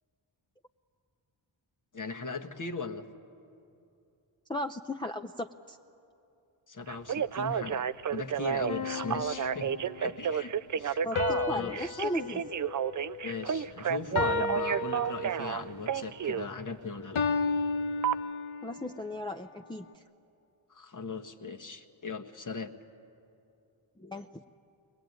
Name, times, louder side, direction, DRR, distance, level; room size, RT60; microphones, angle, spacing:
voice 1, 1.9-3.0 6.7-7.8 8.1-9.7 10.0-11.0 11.5-12.1 13.2-17.2 20.7-22.7, left 4 dB, 40° left, 5 dB, 1.4 m, -38 dB
voice 2, 4.5-5.8 11.0-12.4 18.6-20.0 24.0-24.3, left 1 dB, 10° left, 5 dB, 0.6 m, -36 dB
Telephone, 6.9-16.5 18.0-18.2, right 8 dB, 40° right, 0.5 m, -31 dB
sound 1, 8.7-10.1 11.2-13.6 14.2-15.7 17.2-18.8, left 3 dB, 80° left, 1.1 m, -33 dB
23.0 x 19.5 x 9.4 m, 2.7 s
cardioid pair, 70°, 48 cm